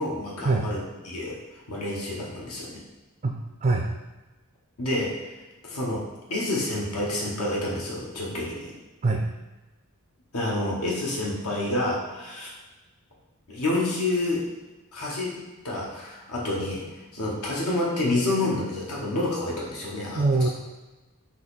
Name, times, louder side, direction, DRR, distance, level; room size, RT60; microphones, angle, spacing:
voice 1, 0.0-1.4 1.7-2.8 4.8-5.3 5.6-6.0 6.3-8.7 10.3-12.5 13.5-14.4 14.9-20.5, left 2 dB, 80° left, -4 dB, 1.0 m, -28 dB
voice 2, 3.2-3.9 9.0-9.2 20.1-20.5, right 3 dB, 35° right, 1 dB, 0.3 m, -23 dB
4.1 x 2.8 x 4.0 m, 1.1 s
head